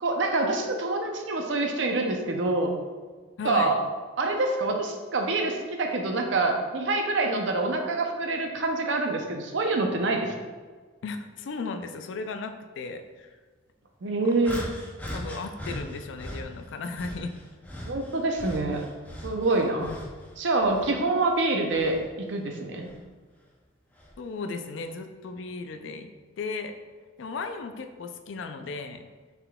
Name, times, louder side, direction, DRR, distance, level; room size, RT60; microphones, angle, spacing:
voice 1, 0.0-2.7 3.4-3.8 4.2-10.3 14.0-14.6 17.9-18.8 19.2-19.9 20.4-22.9, right 2 dB, 65° right, 3 dB, 0.6 m, -26 dB
voice 2, 3.4-3.7 11.0-13.3 14.0-14.1 15.1-17.4 19.8-20.0 24.2-26.1 26.4-26.7 27.2-29.0, left 4 dB, 70° left, 7 dB, 0.4 m, -36 dB
sound 1, 14.4-16.5 16.9-20.2 20.6-22.1 22.8-23.0 24.0-24.1, equal, 10° left, 0.5 m, -39 dB
5.7 x 3.6 x 2.3 m, 1.4 s
head